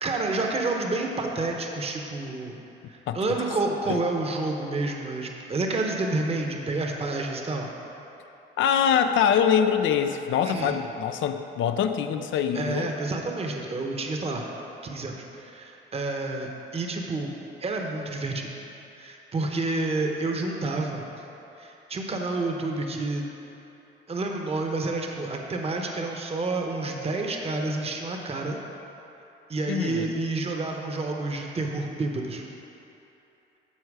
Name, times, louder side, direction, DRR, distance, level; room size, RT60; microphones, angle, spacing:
voice 1, 0.0-2.6 2.9-7.7 10.4-10.8 12.5-14.4 14.8-17.3 17.6-18.5 19.0-21.1 21.6-23.2 24.1-28.6 29.5-32.4, right 2 dB, 30° right, 1 dB, 0.9 m, -29 dB
voice 2, 8.6-12.9 29.7-30.1, left 8 dB, 75° left, 8 dB, 0.5 m, -24 dB
13.0 x 4.5 x 4.8 m, 3.0 s
cardioid pair, 90°, 20 cm